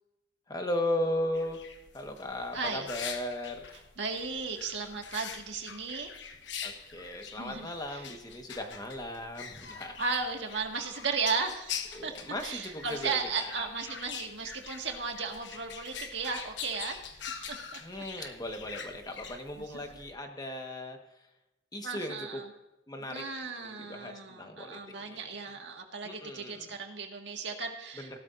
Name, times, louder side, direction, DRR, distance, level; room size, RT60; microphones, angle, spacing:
voice 1, 0.5-1.6 1.9-3.7 6.6-10.0 11.9-13.7 17.8-21.3 21.7-22.4 22.9-23.2 23.6-25.3 26.0-26.7 27.9-28.2, left 1 dB, 20° left, 4 dB, 1.4 m, -37 dB
sound 1, 1.3-20.1, left 7 dB, 70° left, 1.2 m, -44 dB
voice 2, 2.5-2.9 4.0-6.1 7.4-8.0 10.0-12.1 12.4-17.2 17.5-17.8 18.2-18.3 19.6-19.8 21.8-22.4 23.1-28.2, right 4 dB, 70° right, 3 dB, 1.8 m, -35 dB
17.0 x 12.0 x 2.6 m, 0.96 s
head